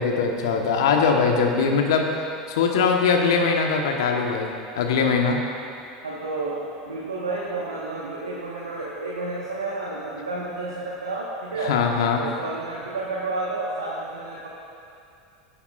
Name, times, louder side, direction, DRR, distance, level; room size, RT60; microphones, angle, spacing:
voice 1, 0.0-2.1 2.5-5.4 11.6-12.2, left 5 dB, 70° left, 2 dB, 1.2 m, -21 dB
voice 2, 6.0-11.7 12.2-14.5, right 2 dB, 85° right, -6 dB, 1.4 m, -31 dB
17.0 x 9.6 x 2.5 m, 2.5 s
hypercardioid pair, 80°, 2 cm